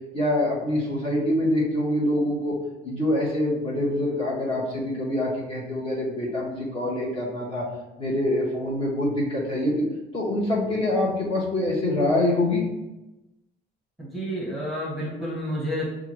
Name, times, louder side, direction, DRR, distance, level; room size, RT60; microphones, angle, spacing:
voice 1, 0.1-2.6 2.8-7.6 8.0-9.8 10.1-12.6, left 1 dB, 35° left, -5 dB, 1.4 m, -25 dB
voice 2, 14.0-15.9, equal, ahead, -6 dB, 1.4 m, -30 dB
5.6 x 2.5 x 3.0 m, 0.99 s
cardioid pair, 110°, 17 cm